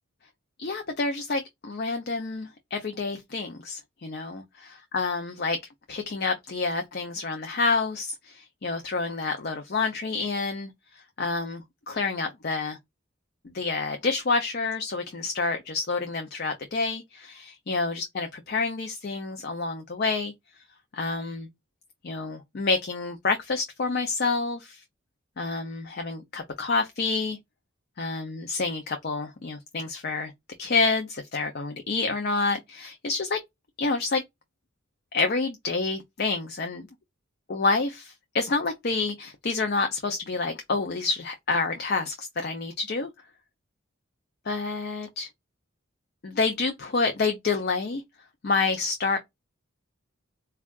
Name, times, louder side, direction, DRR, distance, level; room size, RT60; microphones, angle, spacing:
voice 1, 0.6-4.4 4.9-5.6 5.9-12.8 13.4-20.3 20.9-21.5 22.0-24.8 25.4-27.4 28.0-30.3 30.6-33.4 33.8-34.2 35.1-36.9 37.5-43.1 44.5-45.3 46.2-48.0 48.4-49.2, left 3 dB, 50° left, 0.5 m, -28 dB
4.4 x 2.3 x 2.2 m
head